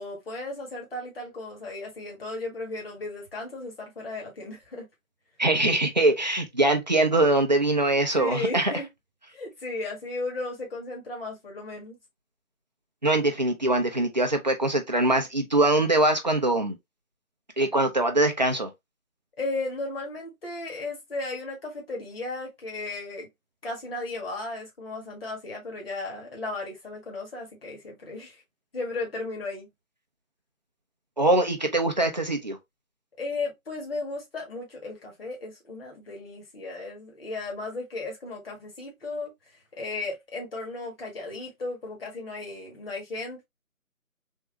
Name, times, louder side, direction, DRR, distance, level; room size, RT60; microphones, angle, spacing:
voice 1, 0.0-4.9 8.2-8.9 9.3-12.0 19.4-23.3 23.6-28.4 28.7-29.7 33.2-39.3 39.7-43.4, left 2 dB, 40° left, 1.8 m, -35 dB
voice 2, 5.4-8.7 13.0-16.8 17.6-18.7 31.2-32.6, right 2 dB, 30° right, 0.6 m, -23 dB
3.6 x 2.7 x 3.3 m
figure-of-eight pair, 165°, 42 cm